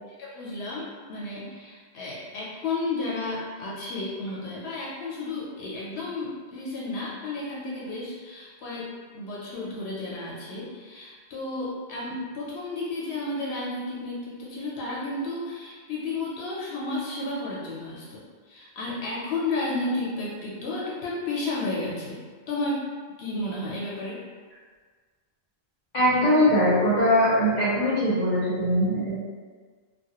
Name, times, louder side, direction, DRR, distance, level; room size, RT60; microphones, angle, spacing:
voice 1, 0.2-22.2 22.5-22.9 23.2-24.2, left 2 dB, 85° left, -5 dB, 0.8 m, -32 dB
voice 2, 25.9-29.2, equal, 50° left, -9 dB, 0.8 m, -21 dB
2.3 x 2.1 x 2.8 m, 1.5 s
omnidirectional pair, 1.1 m